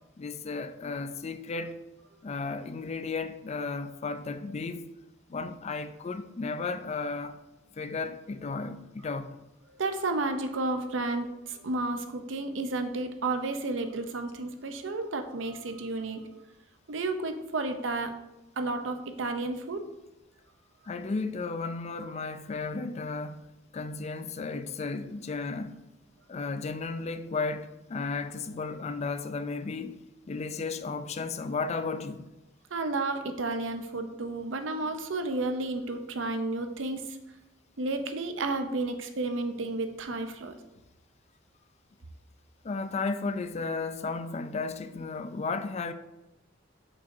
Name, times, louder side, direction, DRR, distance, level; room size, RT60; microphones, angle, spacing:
voice 1, 0.2-1.8 2.2-4.9 5.3-7.4 7.7-9.3 20.9-23.4 23.7-25.8 26.3-30.0 30.3-32.2 42.6-45.9, left 4 dB, 35° left, 0.4 m, -34 dB
voice 2, 9.7-16.2 16.9-18.1 18.6-19.8 32.7-37.2 37.8-40.5, right 2 dB, 80° right, 0.7 m, -32 dB
6.5 x 5.4 x 2.7 m
head